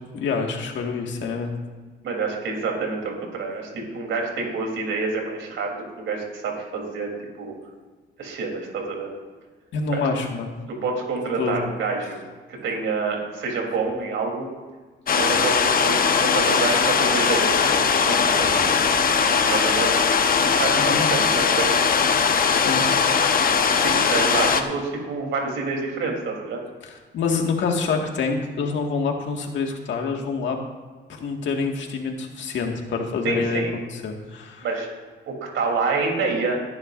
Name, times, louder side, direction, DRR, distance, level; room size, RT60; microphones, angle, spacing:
voice 1, 0.1-1.5 9.7-10.5 11.4-11.6 20.8-21.1 22.5-22.8 26.8-30.6 31.1-33.6 33.9-34.7, left 4 dB, 70° left, 2 dB, 1.9 m, -26 dB
voice 2, 2.0-7.1 7.4-7.5 8.2-9.1 10.7-12.2 12.5-14.5 15.1-18.6 19.5-19.9 20.4-21.7 23.8-26.6 33.2-33.7 34.6-34.9 35.3-36.6, right 4 dB, 75° right, 0 dB, 3.5 m, -27 dB
sound 1, 15.1-24.6, left 6 dB, 45° left, 1.0 m, -20 dB
19.5 x 10.5 x 2.6 m, 1.4 s
cardioid pair, 90°, 20 cm